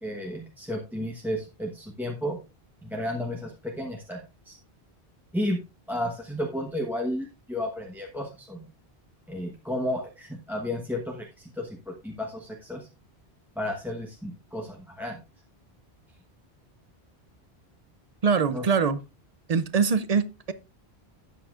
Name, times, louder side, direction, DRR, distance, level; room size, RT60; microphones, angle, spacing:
voice 1, 0.0-2.4 2.8-4.6 5.3-5.6 5.9-8.7 9.3-12.9 13.6-15.2 18.5-18.6, left 1 dB, ahead, 1.0 m, -32 dB
voice 2, 18.2-19.0 19.5-20.5, right 5 dB, 45° right, 0.5 m, -23 dB
12.5 x 8.6 x 2.4 m
omnidirectional pair, 1.1 m